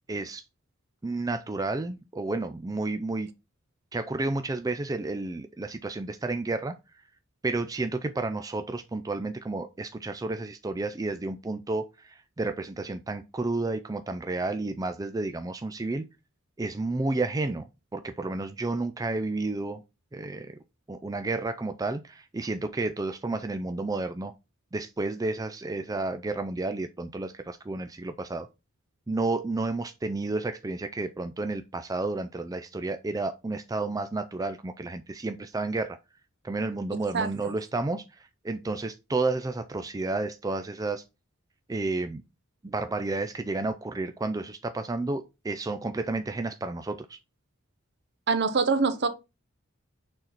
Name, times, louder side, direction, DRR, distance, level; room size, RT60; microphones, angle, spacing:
voice 1, 0.1-0.4 1.0-3.3 3.9-6.7 7.4-16.1 16.6-19.8 20.1-20.5 20.9-24.3 24.7-28.5 29.1-36.0 36.4-41.0 41.7-42.2 42.6-47.2, right 2 dB, 15° right, 0.4 m, -31 dB
voice 2, 37.1-37.5 48.3-49.1, right 4 dB, 55° right, 1.0 m, -25 dB
6.5 x 4.1 x 4.4 m
head